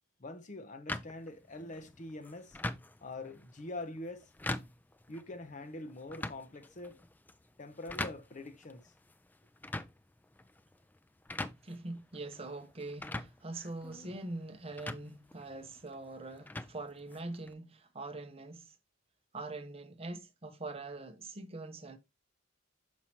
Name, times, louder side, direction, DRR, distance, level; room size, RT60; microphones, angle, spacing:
voice 1, 0.2-2.6 3.0-4.3 5.1-7.0 7.6-8.9, left 2 dB, 40° left, 0.7 m, -44 dB
sound 1, 0.9-17.5, left 2 dB, 10° left, 0.3 m, -44 dB
voice 2, 11.6-18.8 19.3-22.0, right 2 dB, 30° right, 0.7 m, -43 dB
6.1 x 5.6 x 2.8 m
head